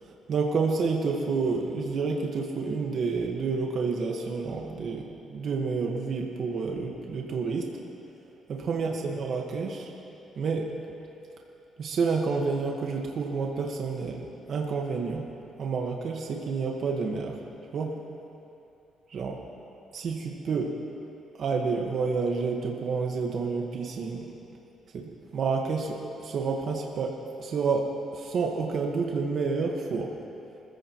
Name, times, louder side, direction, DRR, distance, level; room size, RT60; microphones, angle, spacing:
voice 1, 0.3-7.7 8.5-9.9 10.4-10.7 11.8-14.2 14.5-15.3 15.6-17.3 17.7-17.9 19.1-19.4 19.9-20.7 21.4-24.3 24.9-30.1, right 4 dB, 60° right, 0 dB, 1.5 m, -29 dB
25.5 x 15.0 x 3.1 m, 2.9 s
cardioid pair, 90°, 0 cm